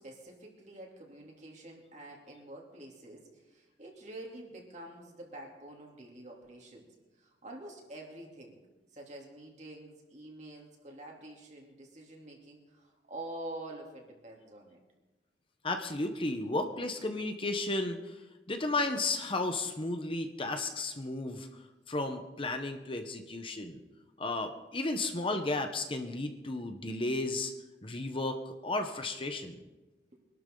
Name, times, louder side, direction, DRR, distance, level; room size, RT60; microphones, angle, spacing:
voice 1, 0.0-6.9 7.2-8.6 8.9-14.8 30.1-30.2, right 1 dB, 40° right, 0 dB, 3.1 m, -47 dB
voice 2, 15.6-23.8 24.2-27.5 27.8-29.6, left 2 dB, 30° left, 6 dB, 1.1 m, -34 dB
24.0 x 12.0 x 3.9 m, 1.1 s
head